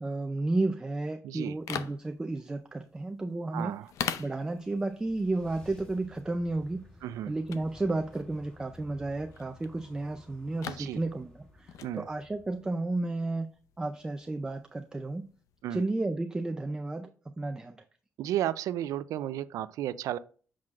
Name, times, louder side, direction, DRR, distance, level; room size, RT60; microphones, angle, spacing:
voice 1, 0.0-3.8 4.2-6.9 7.3-11.3 11.6-13.5 13.8-15.3 15.7-17.1 17.4-17.7, right 2 dB, 15° right, 0.4 m, -32 dB
voice 2, 1.2-1.6 3.5-3.9 7.0-7.3 10.6-11.0 11.8-12.1 15.6-15.8 18.2-20.2, right 12 dB, 90° right, 0.4 m, -33 dB
sound 1, 1.4-15.6, left 8 dB, 75° left, 0.5 m, -44 dB
sound 2, 4.3-13.2, left 2 dB, 15° left, 1.2 m, -55 dB
7.5 x 6.2 x 2.5 m
cardioid pair, 145°, 6 cm